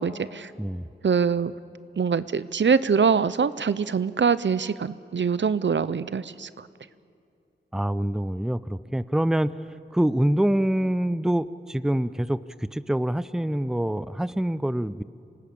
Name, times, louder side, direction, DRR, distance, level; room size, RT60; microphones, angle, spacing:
voice 1, 0.0-0.5 1.0-1.5 2.0-6.7, right 6 dB, 75° right, 16 dB, 0.6 m, -24 dB
voice 2, 7.7-9.5 9.9-15.0, right 1 dB, 5° right, 15 dB, 0.5 m, -25 dB
26.5 x 18.5 x 8.6 m, 2.4 s
wide cardioid pair, 80°, 19 cm